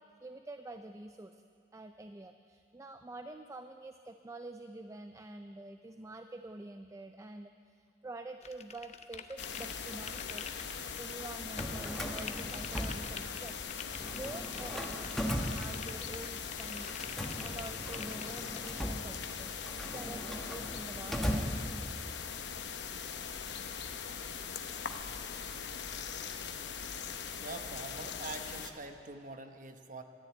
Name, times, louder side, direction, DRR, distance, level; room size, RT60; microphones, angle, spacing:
voice 1, 0.0-1.4 1.7-10.5 11.0-13.7 14.1-19.5 19.9-21.5, right 2 dB, 20° right, 8 dB, 0.4 m, -47 dB
sound 1, 8.4-11.1 11.6-18.7, left 6 dB, 40° left, 0.7 m, -46 dB
sound 2, 9.4-28.7, left 6 dB, 85° left, 0.9 m, -41 dB
Drawer open or close, 11.4-13.6 13.9-16.3 16.9-22.2, equal, ahead, 1.1 m, -38 dB
voice 2, 27.4-30.0, right 3 dB, 50° right, 7 dB, 1.0 m, -44 dB
13.0 x 10.5 x 9.0 m, 2.5 s
head